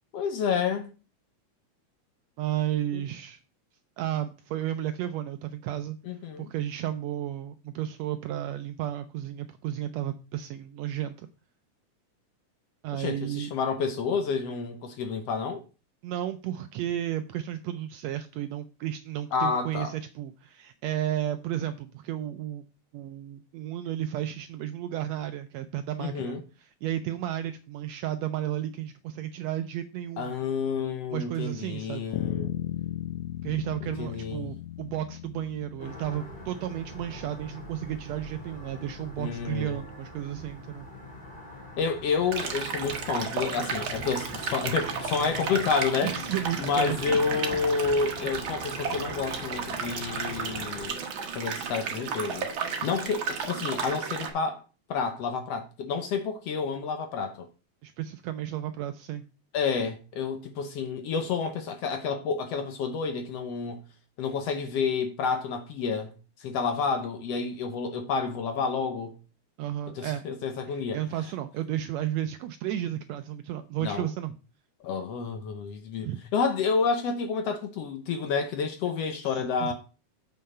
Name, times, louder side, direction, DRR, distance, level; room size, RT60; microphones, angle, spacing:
voice 1, 0.1-0.9 2.9-3.0 6.1-6.5 12.9-15.6 19.3-19.9 26.0-26.4 30.2-32.5 34.0-34.5 39.2-39.8 41.8-46.1 46.6-51.0 51.4-54.6 54.9-57.5 59.5-63.8 64.2-66.1 66.4-69.2 70.0-71.0 73.8-74.1 74.8-79.7, left 5 dB, 70° left, 1.7 m, -29 dB
voice 2, 2.4-3.4 4.0-6.0 6.4-11.3 12.8-13.5 16.0-22.6 22.9-30.4 31.1-32.0 33.4-40.9 46.0-47.2 57.8-59.2 69.6-70.2 70.7-74.4 76.0-76.2 79.2-79.7, right 12 dB, 80° right, 1.5 m, -33 dB
Bass guitar, 32.1-36.6, left 13 dB, 90° left, 2.1 m, -36 dB
sound 1, 35.8-50.9, left 1 dB, 15° left, 2.8 m, -42 dB
sound 2, 42.3-54.3, right 6 dB, 55° right, 1.6 m, -33 dB
7.4 x 5.7 x 5.4 m
omnidirectional pair, 3.5 m